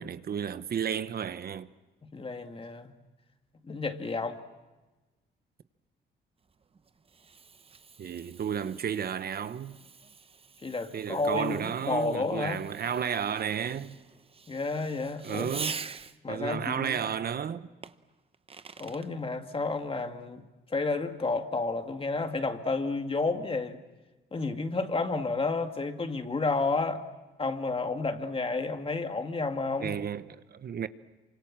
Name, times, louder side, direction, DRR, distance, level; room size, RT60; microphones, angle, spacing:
voice 1, 0.0-1.7 8.0-9.8 10.9-14.0 15.2-15.8 16.3-17.7 29.8-30.9, right 8 dB, 50° right, 1.0 m, -32 dB
voice 2, 2.1-2.9 3.6-4.4 10.6-12.7 14.5-15.5 16.2-17.0 18.8-20.4 20.7-23.8 24.3-27.0 27.4-29.9, left 3 dB, 25° left, 2.2 m, -31 dB
Fireworks, 6.5-16.4 17.8-19.1, right 5 dB, 30° right, 0.9 m, -45 dB
27.5 x 25.0 x 7.5 m
cardioid pair, 90°, 20 cm